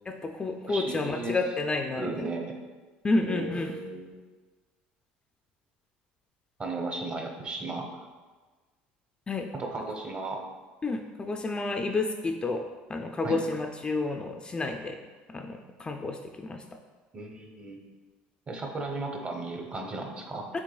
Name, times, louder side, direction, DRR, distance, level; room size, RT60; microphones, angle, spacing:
voice 1, 0.1-2.1 3.0-3.7 9.3-9.5 10.8-12.6 12.9-15.0 15.3-16.6 20.5-20.6, left 3 dB, 20° left, 4 dB, 0.3 m, -30 dB
voice 2, 0.7-1.4 2.0-2.5 3.2-4.1 6.6-8.0 9.5-10.4 13.2-13.4 17.1-17.8 18.5-20.4, right 2 dB, 30° right, 3 dB, 0.7 m, -35 dB
6.0 x 3.7 x 2.3 m, 1.3 s
supercardioid pair, 100°, 4 cm